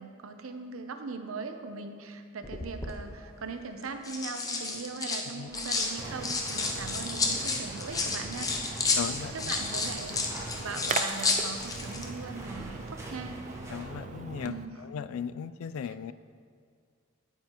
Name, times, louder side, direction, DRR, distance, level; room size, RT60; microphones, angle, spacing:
voice 1, 0.0-8.6 9.3-13.4 14.5-14.8 15.8-16.1, right 4 dB, 85° right, 7 dB, 0.7 m, -40 dB
sound 1, 2.4-2.9 3.8-5.9 6.2-12.1 12.4-12.6, left 3 dB, 15° left, 0.6 m, -31 dB
sound 2, 5.5-13.9, right 1 dB, 15° right, 0.8 m, -46 dB
Splash splatter, 6.0-14.6, right 4 dB, 35° right, 0.3 m, -40 dB
voice 2, 9.0-9.5 13.7-14.5 14.8-16.1, left 7 dB, 85° left, 15 dB, 0.3 m, -36 dB
9.3 x 9.0 x 3.0 m, 2.1 s
head